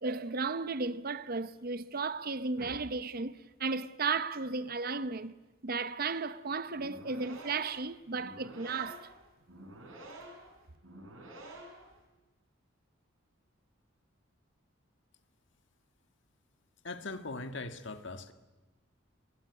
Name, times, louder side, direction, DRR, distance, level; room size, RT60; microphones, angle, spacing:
voice 1, 0.0-5.3 5.6-9.1, right 4 dB, 45° right, 0.8 m, -34 dB
sound 1, 6.7-12.0, right 1 dB, 80° right, 6.3 m, -49 dB
voice 2, 16.8-18.3, left 3 dB, 60° left, 1.7 m, -40 dB
23.5 x 22.0 x 9.8 m
head